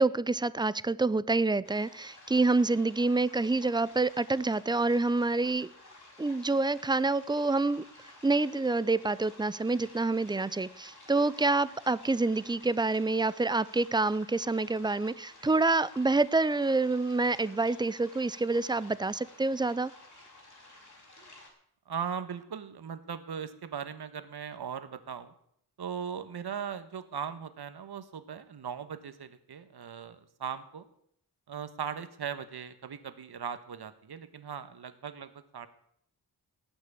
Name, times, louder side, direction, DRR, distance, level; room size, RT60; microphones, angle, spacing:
voice 1, 0.0-5.7 6.2-7.9 8.2-19.9, right 3 dB, 10° right, 0.5 m, -27 dB
sound 1, 1.6-21.5, left 2 dB, 50° left, 5.3 m, -54 dB
voice 2, 21.9-25.3 25.8-30.8 31.5-35.7, right 7 dB, 75° right, 1.4 m, -39 dB
18.5 x 6.2 x 8.5 m
wide cardioid pair, 75°, 39 cm